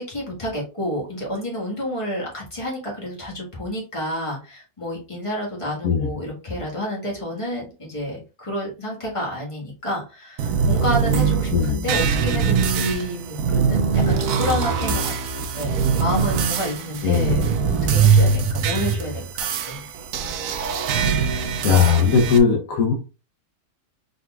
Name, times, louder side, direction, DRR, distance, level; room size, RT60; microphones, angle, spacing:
voice 1, 0.0-19.9, equal, 20° left, -4 dB, 1.6 m, -29 dB
sound 1, 10.4-22.4, right 5 dB, 70° right, 1.0 m, -22 dB
voice 2, 17.0-17.4 21.6-22.9, left 6 dB, 65° left, 0 dB, 1.2 m, -18 dB
4.2 x 3.9 x 2.3 m, 0.32 s
omnidirectional pair, 1.5 m